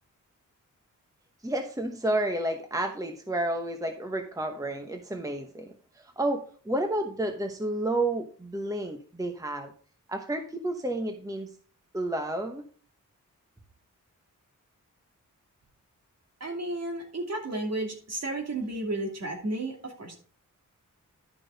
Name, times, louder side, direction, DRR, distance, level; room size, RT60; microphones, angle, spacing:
voice 1, 1.4-9.7 10.1-11.5 11.9-12.6, right 1 dB, 10° right, 4 dB, 1.0 m, -31 dB
voice 2, 16.4-20.2, right 2 dB, 50° right, 1 dB, 2.7 m, -33 dB
11.0 x 6.1 x 4.0 m, 0.42 s
wide cardioid pair, 140°, 32 cm